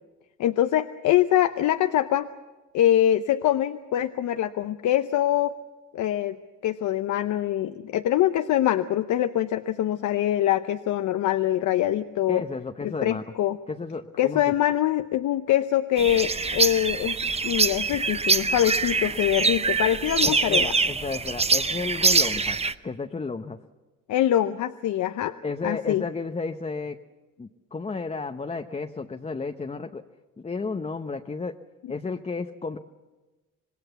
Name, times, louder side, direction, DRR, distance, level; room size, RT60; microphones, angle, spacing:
voice 1, 0.4-2.3 2.7-5.5 5.9-6.4 6.6-12.4 12.8-13.6 14.2-17.2 17.4-20.7 24.1-25.4 25.6-26.0, left 12 dB, 75° left, 10 dB, 0.8 m, -24 dB
voice 2, 12.3-13.3 13.7-14.5 20.2-22.6 22.8-23.6 25.4-27.0 27.4-30.0 30.4-31.6 31.9-32.8, left 4 dB, 20° left, 6 dB, 0.9 m, -32 dB
sound 1, 16.0-22.7, right 4 dB, 20° right, 0.8 m, -24 dB
26.0 x 19.5 x 7.0 m, 1.2 s
cardioid pair, 90°, 30 cm